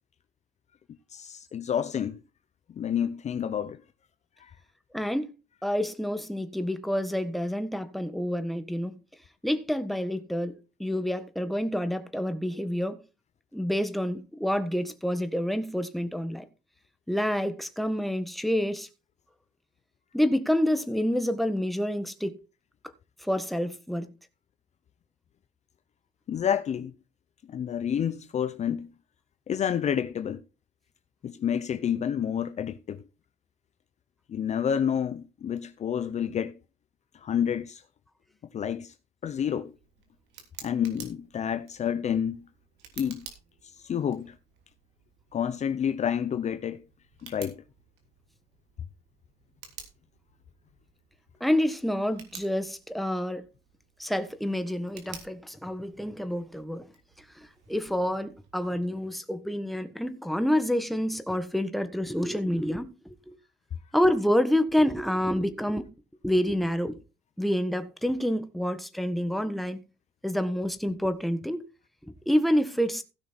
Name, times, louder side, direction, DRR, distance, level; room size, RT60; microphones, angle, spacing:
voice 1, 1.1-2.2 2.8-3.8 4.4-4.5 26.3-26.9 27.5-28.9 29.5-30.4 31.2-33.0 34.3-36.6 37.2-37.8 38.5-38.9 39.2-39.7 40.6-42.4 43.0-43.3 43.8-44.3 45.3-46.8 47.2-47.6, left 8 dB, 40° left, 0.7 m, -29 dB
voice 2, 4.9-5.3 5.6-9.0 9.4-13.0 13.5-16.4 17.1-18.9 20.1-22.4 23.2-24.1 51.4-53.5 54.0-56.9 57.3-63.3 63.9-65.8 66.2-67.0 67.4-69.8 70.2-71.6 72.2-73.0, equal, ahead, 1.5 m, -28 dB
Tick, 39.3-59.0, right 8 dB, 85° right, 3.3 m, -52 dB
16.0 x 6.2 x 4.5 m
cardioid pair, 110°, 17 cm